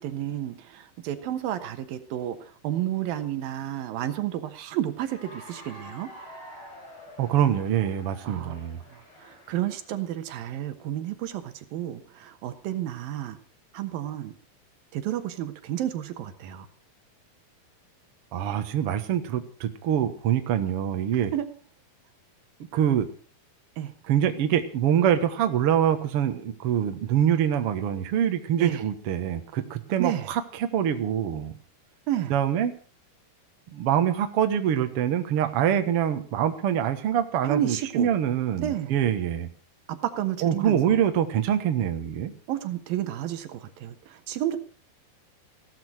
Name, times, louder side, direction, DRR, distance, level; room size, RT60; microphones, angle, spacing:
voice 1, 0.0-6.1 8.2-8.6 8.9-13.4 13.7-14.3 14.9-16.7 21.3-21.5 23.8-23.9 28.6-28.9 30.0-30.3 32.1-32.4 37.4-38.1 38.6-39.0 39.9-41.0 42.5-44.6, right 12 dB, 75° right, 10 dB, 2.9 m, -31 dB
Cheering / Applause, 5.0-10.1, equal, 35° left, 5.7 m, -47 dB
voice 2, 7.2-8.8 18.3-21.3 22.7-23.1 24.1-31.5 32.3-32.7 33.7-39.5 40.4-42.3, right 9 dB, 55° right, 7 dB, 1.7 m, -25 dB
16.0 x 12.5 x 6.2 m, 0.41 s
omnidirectional pair, 4.3 m